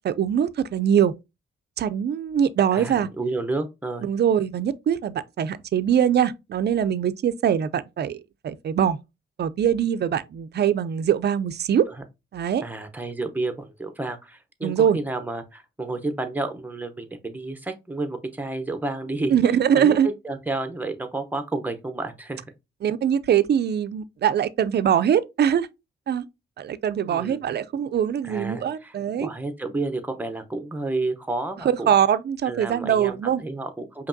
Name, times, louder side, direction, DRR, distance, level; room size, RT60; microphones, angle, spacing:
voice 1, 0.0-1.1 1.8-3.1 4.0-8.2 8.4-9.0 9.4-11.9 12.3-12.6 14.6-15.0 19.3-20.1 22.8-25.7 26.1-26.2 26.6-29.3 31.6-33.4, right 9 dB, 55° right, 0.4 m, -22 dB
voice 2, 2.7-4.2 11.9-12.0 12.6-19.4 19.8-22.5 27.0-27.4 28.2-31.9 32.5-34.1, right 2 dB, 10° right, 0.7 m, -31 dB
5.0 x 2.8 x 2.6 m
cardioid pair, 105°, 21 cm